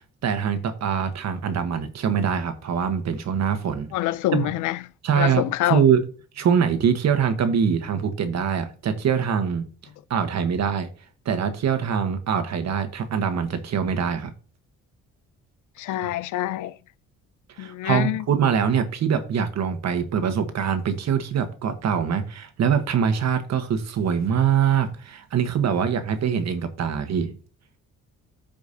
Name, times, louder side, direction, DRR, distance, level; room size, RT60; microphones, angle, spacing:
voice 1, 0.2-3.9 4.3-4.5 5.0-6.0 6.3-9.6 10.1-10.9 11.2-14.3 16.0-16.1 17.6-27.3, right 7 dB, 60° right, 1.3 m, -23 dB
voice 2, 3.9-4.8 5.2-5.8 15.8-16.7 17.6-18.2, left 14 dB, 85° left, 0.5 m, -25 dB
14.0 x 5.1 x 2.7 m
cardioid pair, 90°, 30 cm